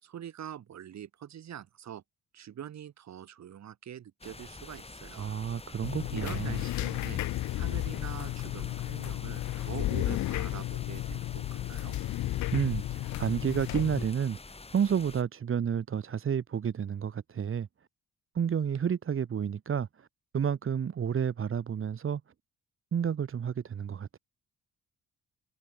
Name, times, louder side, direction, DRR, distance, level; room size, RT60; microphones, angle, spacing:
voice 1, 0.0-2.0 2.3-5.3 6.1-7.2 7.5-12.0, right 10 dB, 65° right, 4.6 m, -44 dB
sound 1, 4.2-15.2, left 3 dB, 20° left, 2.4 m, -47 dB
voice 2, 5.2-6.6 12.5-14.4 14.7-17.7 18.3-20.1 20.3-22.2 22.9-24.2, right 8 dB, 45° right, 1.6 m, -30 dB
sound 2, 5.8-14.1, left 15 dB, 70° left, 0.7 m, -33 dB
cardioid pair, 90°, 30 cm